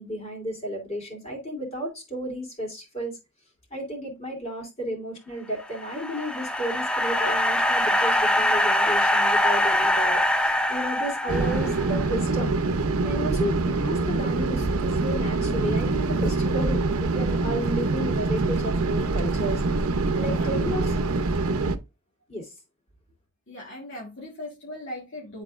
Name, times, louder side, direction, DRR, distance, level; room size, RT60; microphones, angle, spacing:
voice 1, 0.0-3.2 3.7-12.5 13.0-19.6 20.1-20.9 22.3-22.5, equal, 30° left, 2.9 m, -33 dB
sound 1, 5.6-12.0, left 1 dB, 5° left, 0.4 m, -23 dB
sound 2, 11.3-21.8, right 3 dB, 85° right, 0.7 m, -25 dB
voice 2, 20.0-20.5 23.5-25.4, left 1 dB, 55° left, 1.6 m, -39 dB
10.5 x 4.1 x 2.4 m
head